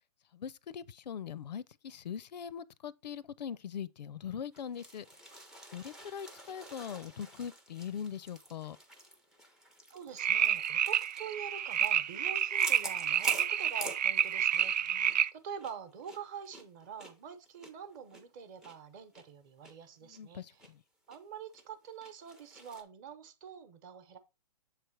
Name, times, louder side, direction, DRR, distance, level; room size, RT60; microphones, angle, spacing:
voice 1, 0.3-5.1 5.7-8.8 14.9-15.1 20.0-20.8, left 8 dB, 85° left, 0.5 m, -41 dB
sound 1, 4.5-14.8 15.0-15.2 15.6-18.7 19.1-19.2 19.6-19.7 20.1-20.7 21.1-21.2 21.5-22.8, right 1 dB, 5° right, 0.4 m, -47 dB
voice 2, 9.9-15.0 15.3-20.7 21.1-24.2, right 7 dB, 30° right, 0.9 m, -45 dB
sound 2, 10.2-15.3, right 9 dB, 90° right, 0.4 m, -29 dB
7.5 x 3.3 x 4.5 m
hypercardioid pair, 150°, 21 cm